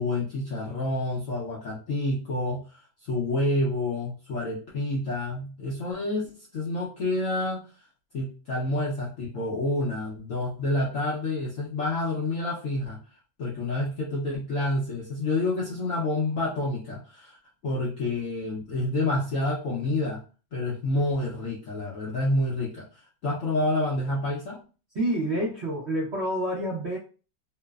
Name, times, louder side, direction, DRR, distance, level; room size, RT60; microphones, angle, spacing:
voice 1, 0.0-7.7 8.1-13.0 13.4-17.4 17.6-20.2 20.5-22.8 23.2-24.6, left 2 dB, 70° left, -4 dB, 0.7 m, -28 dB
voice 2, 24.9-27.0, right 1 dB, 60° right, -6 dB, 0.7 m, -28 dB
3.1 x 2.0 x 2.3 m, 0.36 s
omnidirectional pair, 2.0 m